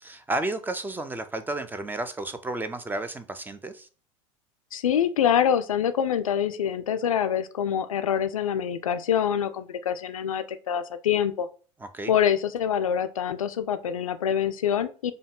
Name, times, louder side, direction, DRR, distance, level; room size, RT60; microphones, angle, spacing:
voice 1, 0.0-3.9 11.8-12.1, right 2 dB, 10° right, 0.5 m, -32 dB
voice 2, 4.7-11.5 12.1-15.1, left 9 dB, 75° left, 0.4 m, -25 dB
5.2 x 2.2 x 3.7 m
figure-of-eight pair, 75°, 18 cm